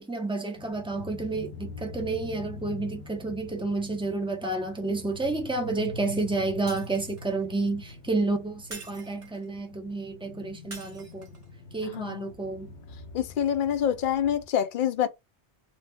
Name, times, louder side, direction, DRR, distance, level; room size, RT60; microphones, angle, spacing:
voice 1, 0.0-11.3 11.7-12.7, right 3 dB, 10° right, 0.3 m, -30 dB
sound 1, 0.5-14.5, left 4 dB, 85° left, 0.9 m, -44 dB
Shatter, 6.7-7.4 8.7-9.5 10.7-11.5, right 3 dB, 30° right, 1.1 m, -45 dB
voice 2, 11.8-12.3 13.1-15.1, left 9 dB, 55° left, 0.7 m, -26 dB
2.7 x 2.1 x 3.4 m
omnidirectional pair, 1.1 m